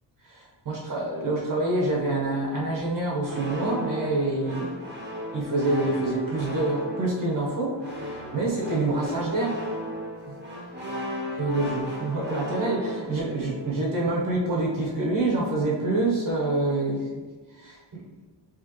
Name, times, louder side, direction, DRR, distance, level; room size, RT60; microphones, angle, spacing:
voice 1, 0.2-4.7 5.3-9.6 10.3-10.4 11.3-17.1 17.5-17.8, right 2 dB, 45° right, -3 dB, 1.1 m, -26 dB
sound 1, 3.2-14.1, left 1 dB, 25° right, 1.0 m, -36 dB
5.1 x 3.3 x 3.1 m, 1.4 s
cardioid pair, 125°, 44 cm